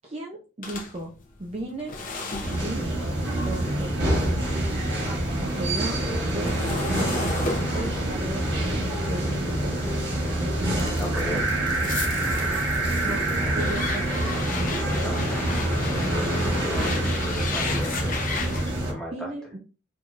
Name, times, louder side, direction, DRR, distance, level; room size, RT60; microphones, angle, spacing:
voice 1, 0.0-1.1 1.4-2.0 2.5-2.8 3.4-4.0 5.0-7.3 7.6-8.5 9.1-9.8 13.0-14.2 19.1-19.6, right 1 dB, 30° right, 0 dB, 0.4 m, -36 dB
sound 1, 0.6-4.9 5.2-10.2 10.7-18.7, left 3 dB, 40° left, 0.7 m, -35 dB
sound 2, 2.4-18.9, right 1 dB, 55° right, 1.4 m, -26 dB
voice 2, 11.0-11.5 14.9-15.2 16.0-18.2 18.9-19.3, left 1 dB, 5° left, -3 dB, 1.1 m, -35 dB
4.5 x 2.8 x 2.4 m, 0.32 s
head